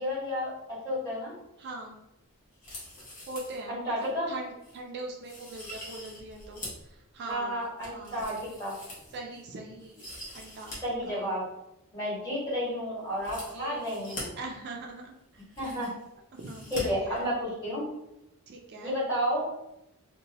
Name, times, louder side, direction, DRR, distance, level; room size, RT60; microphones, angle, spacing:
voice 1, 0.0-1.3 3.7-4.3 7.3-8.7 10.8-11.4 11.9-14.3 15.6-15.9 16.7-17.8 18.8-19.4, equal, 20° left, -8 dB, 1.5 m, -31 dB
voice 2, 1.6-2.0 3.3-8.3 9.1-10.1 10.3-10.7 11.1-11.3 13.5-15.4 16.3-17.3 18.5-18.9, right 2 dB, 50° right, 1 dB, 0.4 m, -42 dB
sound 1, 2.5-3.6 4.0-4.1 4.6-4.8 5.2-6.9 7.3-9.4 9.8-10.8 11.0-11.1 13.1-14.2 15.0-15.1 15.3-16.0 16.4-16.8 17.1-17.2, left 1 dB, 40° left, 0.9 m, -44 dB
2.8 x 2.2 x 2.8 m, 0.86 s
head